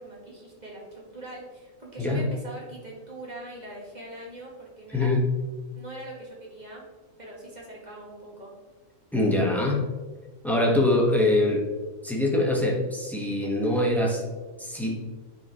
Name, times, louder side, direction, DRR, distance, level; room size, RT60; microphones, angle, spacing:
voice 1, 0.0-5.1 5.8-6.8 7.2-8.5, right 1 dB, 35° right, -3 dB, 1.6 m, -42 dB
voice 2, 2.0-2.3 4.9-5.3 9.1-9.9 10.4-11.7 12.0-14.2 14.6-15.0, left 1 dB, ahead, -2 dB, 1.0 m, -23 dB
9.6 x 4.7 x 2.9 m, 1.3 s
omnidirectional pair, 1.4 m